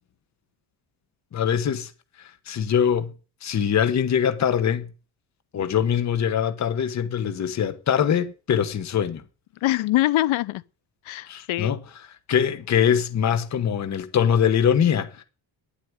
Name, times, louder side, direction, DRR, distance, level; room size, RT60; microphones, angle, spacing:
voice 1, 1.3-1.9 2.2-3.1 3.4-4.9 5.5-9.2 11.3-11.8 12.3-15.2, left 8 dB, 35° left, 1.1 m, -23 dB
voice 2, 9.6-10.6 11.1-11.8, left 16 dB, 75° left, 0.8 m, -23 dB
10.5 x 8.1 x 9.7 m
cardioid pair, 150°, 48 cm